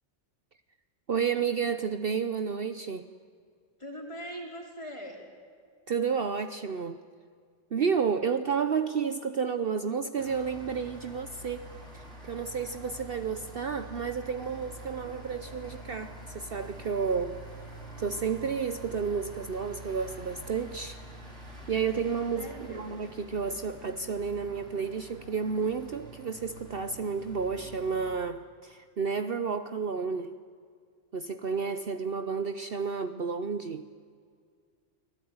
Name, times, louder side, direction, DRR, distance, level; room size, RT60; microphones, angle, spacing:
voice 1, 1.1-3.1 5.9-7.0 7.7-11.7 11.9-17.4 18.0-21.0 21.7-30.4 31.1-33.9, right 6 dB, 50° right, 9 dB, 1.0 m, -31 dB
voice 2, 3.8-5.3 22.4-22.9, equal, 25° left, 0 dB, 4.8 m, -41 dB
sound 1, 10.2-28.1, right 1 dB, 70° right, 6.0 m, -46 dB
30.0 x 20.0 x 9.5 m, 2.1 s
omnidirectional pair, 1.3 m